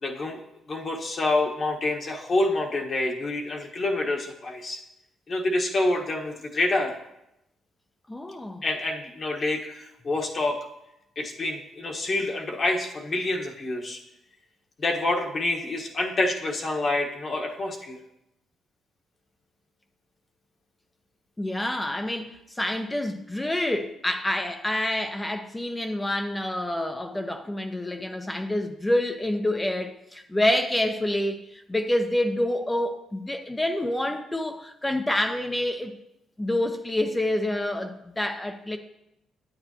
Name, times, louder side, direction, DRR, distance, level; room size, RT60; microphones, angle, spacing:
voice 1, 0.0-0.4 0.7-4.8 5.3-6.9 8.6-10.6 11.2-14.0 14.8-18.0, left 2 dB, 45° left, 1.4 m, -27 dB
voice 2, 8.1-8.6 21.4-35.9 36.4-38.8, left 1 dB, 15° left, 0.7 m, -27 dB
9.0 x 8.7 x 2.9 m
cardioid pair, 90°, 0 cm